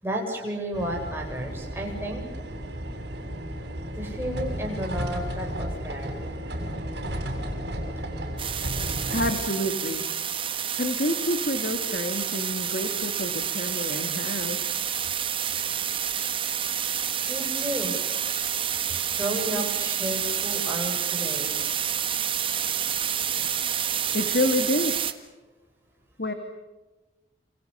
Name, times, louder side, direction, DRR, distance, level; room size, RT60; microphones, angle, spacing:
voice 1, 0.0-2.2 4.0-6.1 17.3-17.9 19.2-21.5, equal, 10° right, 0 dB, 7.7 m, -32 dB
sound 1, 0.7-9.3, equal, 65° right, 7.2 m, -33 dB
sound 2, 8.4-25.1, right 9 dB, 30° right, 1.6 m, -29 dB
voice 2, 9.1-10.0 10.8-14.6 24.1-25.0 26.2-26.3, left 1 dB, 55° left, 7 dB, 2.3 m, -28 dB
29.0 x 28.0 x 6.9 m, 1.1 s
head